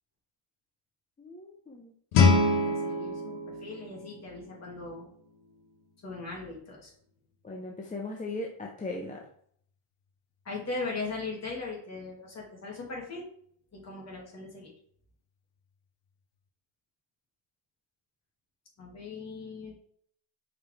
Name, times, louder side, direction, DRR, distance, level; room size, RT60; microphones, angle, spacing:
voice 1, 1.2-1.9 7.4-9.3, left 2 dB, 15° left, 0 dB, 0.8 m, -38 dB
Guitar, 2.1-4.9, left 3 dB, 90° left, 1.2 m, -26 dB
voice 2, 2.5-5.1 6.0-6.9 10.4-13.3 13.7-14.7 18.8-19.7, left 3 dB, 35° left, -2 dB, 2.5 m, -39 dB
5.9 x 5.1 x 3.5 m, 0.62 s
cardioid pair, 125°, 46 cm